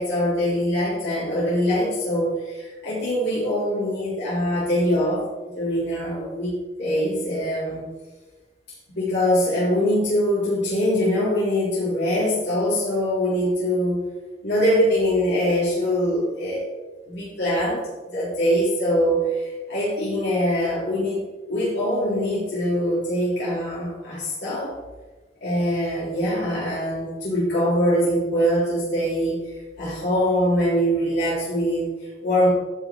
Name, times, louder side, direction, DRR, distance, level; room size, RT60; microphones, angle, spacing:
voice 1, 0.0-5.2 5.5-7.9 8.9-14.0 14.4-16.7 17.1-24.7 25.4-32.5, equal, 65° left, -8 dB, 3.7 m, -23 dB
14.5 x 5.1 x 4.6 m, 1.2 s
head